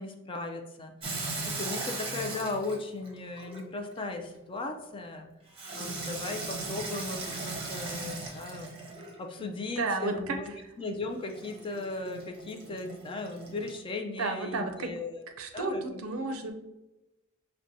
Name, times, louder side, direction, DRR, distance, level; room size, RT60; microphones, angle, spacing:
voice 1, 0.0-5.3 5.7-8.7 9.2-16.0, left 3 dB, 25° left, 4 dB, 0.3 m, -37 dB
Water tap faucet / Sink (filling or washing), 1.0-4.0 5.5-9.3 11.3-13.8, right 3 dB, 25° right, 0.7 m, -38 dB
voice 2, 9.8-10.4 14.2-14.9 15.4-16.5, right 3 dB, 70° right, 5 dB, 0.5 m, -32 dB
6.0 x 2.2 x 2.6 m, 1.0 s
head